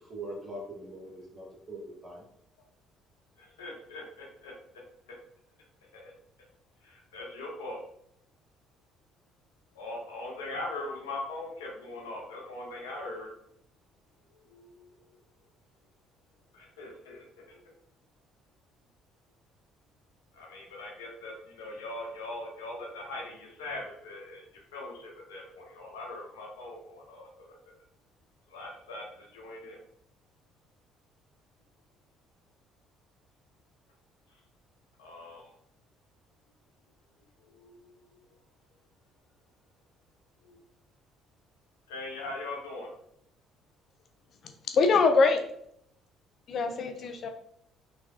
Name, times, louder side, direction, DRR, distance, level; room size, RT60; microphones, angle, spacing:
voice 1, 0.1-2.2, right 1 dB, 35° right, -1 dB, 1.3 m, -42 dB
voice 2, 3.4-5.2 5.9-6.1 6.8-7.8 9.7-13.3 14.3-15.2 16.5-17.7 20.3-27.5 28.5-29.8 34.3-34.4 35.0-35.5 37.4-38.2 40.4-40.6 41.9-42.9, left 2 dB, 85° left, 0 dB, 0.8 m, -41 dB
voice 3, 44.7-45.4 46.5-47.3, left 4 dB, 55° left, 6 dB, 0.4 m, -23 dB
3.4 x 3.2 x 2.5 m, 0.71 s
hypercardioid pair, 55°, 0 cm